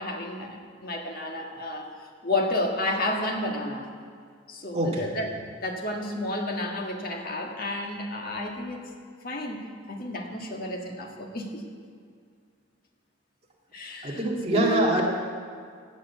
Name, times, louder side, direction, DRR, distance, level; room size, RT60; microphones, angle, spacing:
voice 1, 0.0-1.9 2.2-3.9 4.5-5.3 5.6-8.8 9.2-9.6 9.9-11.6 13.7-14.3 14.5-15.0, left 1 dB, 45° left, 1 dB, 1.7 m, -31 dB
voice 2, 4.7-5.1 14.0-15.0, right 2 dB, 30° right, -2 dB, 2.0 m, -24 dB
16.5 x 6.5 x 8.3 m, 2.1 s
head